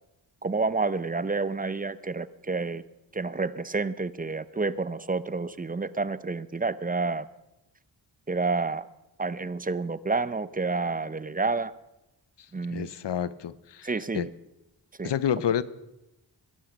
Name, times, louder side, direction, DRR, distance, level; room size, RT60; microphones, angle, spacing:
voice 1, 0.4-2.8 3.1-7.3 8.3-8.9 9.2-11.7 12.5-12.9 13.8-14.3 15.0-15.1, right 3 dB, 20° right, 16 dB, 0.6 m, -29 dB
voice 2, 12.7-14.3 15.0-15.6, left 9 dB, 65° left, 16 dB, 0.8 m, -29 dB
18.0 x 11.5 x 5.2 m, 0.93 s
cardioid pair, 60°, 44 cm